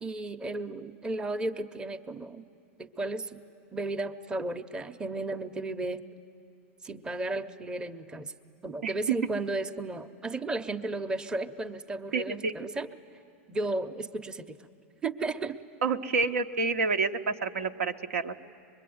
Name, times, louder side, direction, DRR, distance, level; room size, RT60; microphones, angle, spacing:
voice 1, 0.0-2.4 2.8-3.4 3.7-6.0 6.8-8.3 8.6-12.9 13.5-14.6 15.0-15.6, right 2 dB, 10° right, 7 dB, 0.6 m, -34 dB
voice 2, 8.8-9.2 12.1-12.5 15.8-18.4, right 4 dB, 90° right, 6 dB, 0.9 m, -28 dB
24.0 x 22.0 x 9.4 m, 2.5 s
hypercardioid pair, 125°, 7 cm